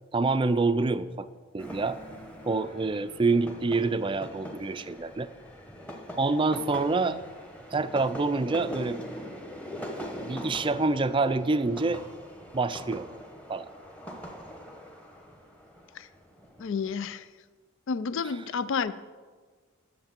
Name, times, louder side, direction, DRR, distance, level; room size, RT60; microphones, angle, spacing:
voice 1, 0.1-1.3 1.5-2.0 2.5-5.3 6.2-7.2 7.7-9.0 10.2-12.0 12.5-13.1 13.5-13.7, right 3 dB, 25° right, 13 dB, 0.4 m, -26 dB
sound 1, 1.6-17.1, equal, 5° left, 1.0 m, -42 dB
voice 2, 16.6-17.2 17.9-18.9, left 5 dB, 60° left, 15 dB, 0.4 m, -30 dB
10.5 x 6.8 x 7.4 m, 1.5 s
head